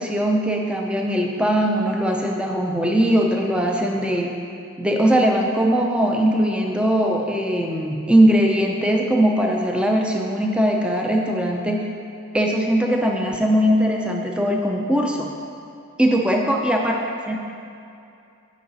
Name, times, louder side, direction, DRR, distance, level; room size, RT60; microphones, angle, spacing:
voice 1, 0.0-4.3 4.8-11.9 12.3-15.3 16.0-17.4, equal, 5° right, 0 dB, 0.6 m, -20 dB
12.5 x 5.8 x 4.1 m, 2.6 s
head